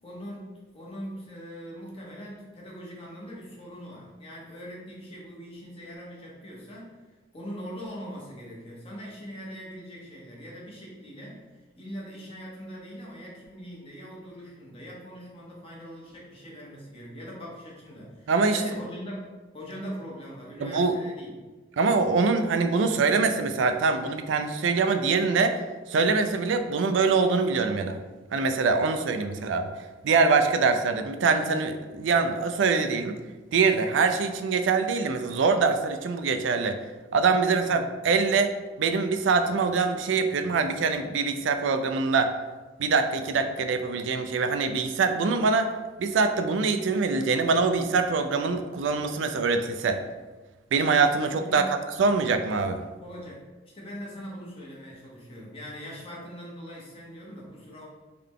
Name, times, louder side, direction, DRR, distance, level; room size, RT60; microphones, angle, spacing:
voice 1, 0.0-6.9 7.3-11.4 11.8-21.4 37.6-37.8 51.4-51.7 53.0-53.4 53.7-57.9, equal, 30° left, -4 dB, 1.1 m, -41 dB
voice 2, 18.3-18.6 20.6-21.0 21.8-25.6 25.9-28.0 28.3-29.7 30.0-33.1 33.5-36.8 37.1-38.5 38.8-42.3 42.8-45.7 46.0-50.0 50.7-51.6 52.0-52.8, right 4 dB, 80° right, 7 dB, 0.4 m, -24 dB
3.8 x 3.2 x 3.6 m, 1.2 s
head